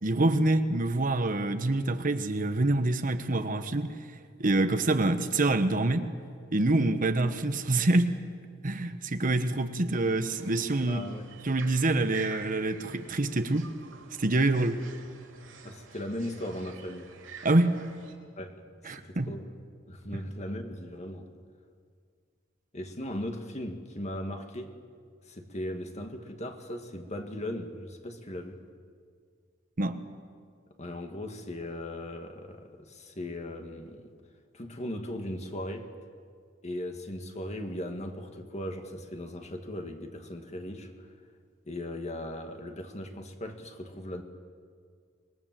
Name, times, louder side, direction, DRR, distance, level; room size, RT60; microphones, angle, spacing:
voice 1, 0.0-3.9 4.4-6.1 6.5-8.2 8.6-11.1 11.4-13.7 14.2-14.8 17.4-17.8 18.8-19.3 29.8-30.0, right 2 dB, 45° right, 8 dB, 1.2 m, -26 dB
sound 1, 9.9-18.1, right 5 dB, 70° right, 3.5 m, -48 dB
voice 2, 10.9-11.2 15.6-17.1 18.4-18.5 18.9-19.5 19.9-21.3 22.7-24.7 25.3-28.6 30.8-34.1 34.5-35.9 36.6-40.9 41.7-44.2, left 1 dB, 35° left, 5 dB, 2.0 m, -38 dB
25.5 x 21.5 x 7.7 m, 2.1 s
head